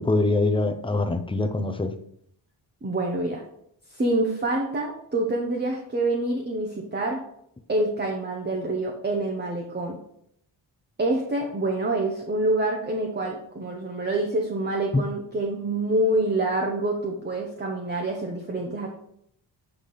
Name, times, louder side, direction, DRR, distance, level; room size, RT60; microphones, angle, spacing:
voice 1, 0.0-1.9 14.9-15.0, left 2 dB, 10° left, 8 dB, 0.6 m, -23 dB
voice 2, 2.8-3.4 3.9-7.2 7.7-10.0 11.0-18.9, right 2 dB, 25° right, 1 dB, 1.0 m, -26 dB
8.2 x 3.5 x 5.7 m, 0.71 s
wide cardioid pair, 115°, 45 cm